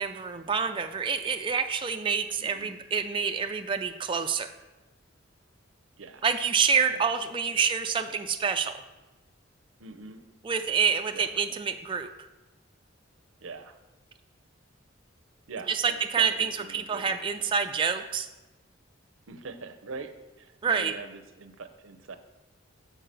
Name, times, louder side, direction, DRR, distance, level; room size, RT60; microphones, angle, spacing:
voice 1, 0.0-4.5 6.2-8.7 10.4-12.1 15.7-18.3 20.6-20.9, right 6 dB, 25° right, 6 dB, 0.3 m, -27 dB
voice 2, 2.4-2.8 6.0-6.3 6.9-7.6 9.8-10.2 11.1-11.3 13.4-13.8 15.5-17.2 19.3-22.2, right 4 dB, 80° right, 8 dB, 0.7 m, -43 dB
7.4 x 4.6 x 6.8 m, 1.1 s
head